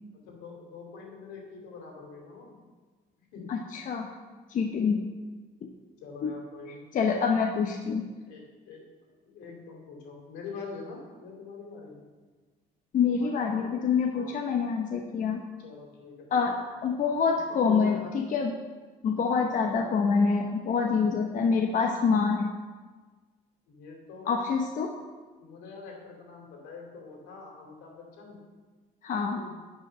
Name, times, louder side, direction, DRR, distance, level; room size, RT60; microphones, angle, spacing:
voice 1, 0.1-2.6 3.3-3.5 4.1-4.3 6.0-6.8 8.3-8.8 9.2-12.0 13.1-13.8 14.1-14.3 15.6-16.3 16.5-16.6 17.0-18.1 19.3-19.5 20.9-21.1 23.7-24.4 25.4-28.4 29.3-29.5, left 4 dB, 85° left, 0 dB, 2.7 m, -45 dB
voice 2, 3.5-4.1 4.5-5.1 5.6-5.7 6.2-6.3 6.9-8.1 12.9-15.4 16.3-18.5 19.0-22.5 24.3-24.9 29.0-29.4, left 5 dB, 50° left, 2 dB, 0.9 m, -26 dB
11.0 x 5.3 x 6.6 m, 1.4 s
cardioid pair, 110°, 17 cm